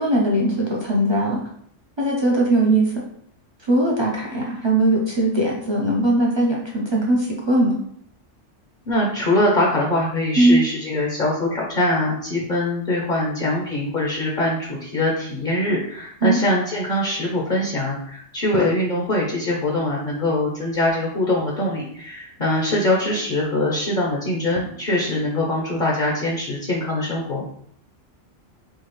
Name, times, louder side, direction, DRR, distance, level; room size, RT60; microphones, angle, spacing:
voice 1, 0.0-1.4 2.0-2.9 3.7-7.8 10.4-10.6 16.2-16.4, right 1 dB, 30° right, -3 dB, 0.5 m, -19 dB
voice 2, 8.9-27.4, left 1 dB, 45° left, -3 dB, 0.8 m, -23 dB
4.6 x 2.4 x 3.1 m, 0.66 s
omnidirectional pair, 1.3 m